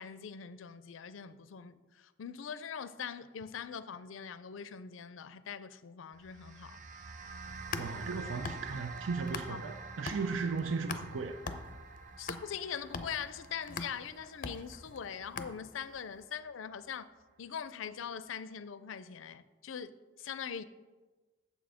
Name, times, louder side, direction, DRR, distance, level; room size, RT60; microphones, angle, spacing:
voice 1, 0.0-6.8 12.2-17.1 17.4-20.6, left 7 dB, 85° left, 0.5 m, -42 dB
sound 1, 6.1-16.7, right 4 dB, 40° right, 0.5 m, -48 dB
sound 2, 7.4-9.8 10.1-16.0, left 4 dB, 45° left, 0.5 m, -43 dB
voice 2, 7.8-11.4, right 4 dB, 85° right, 0.5 m, -36 dB
8.1 x 7.0 x 5.0 m
head